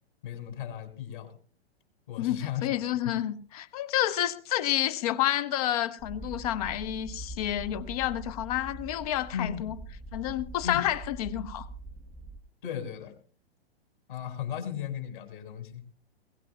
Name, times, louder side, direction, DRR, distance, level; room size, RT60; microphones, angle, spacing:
voice 1, 0.2-1.4 2.1-2.8 3.0-3.1 9.3-9.6 10.6-10.8 12.6-13.1 14.1-15.8, left 9 dB, 50° left, 2.9 m, -36 dB
voice 2, 2.2-9.8 10.1-11.7, left 12 dB, 35° left, 0.8 m, -29 dB
sound 1, 6.0-12.4, right 2 dB, 5° right, 0.6 m, -43 dB
21.5 x 17.0 x 2.2 m
figure-of-eight pair, 110°, 32 cm